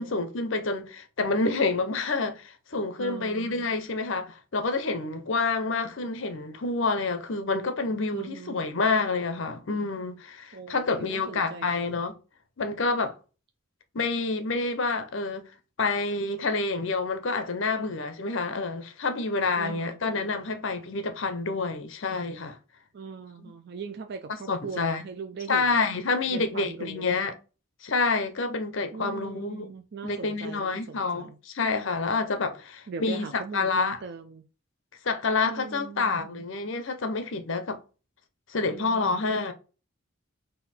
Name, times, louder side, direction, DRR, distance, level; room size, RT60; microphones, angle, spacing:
voice 1, 0.0-12.1 12.6-13.2 13.9-15.5 15.8-22.6 23.4-23.5 24.5-25.0 25.5-27.3 27.8-29.7 30.0-34.0 35.0-37.8 38.5-39.5, left 3 dB, 60° left, 0.7 m, -28 dB
voice 2, 3.0-3.7 8.1-8.8 10.5-12.0 19.6-20.3 22.9-27.2 28.9-31.4 32.9-34.4 35.4-36.4 38.7-39.4, right 5 dB, 50° right, 0.4 m, -40 dB
3.9 x 2.6 x 4.2 m
head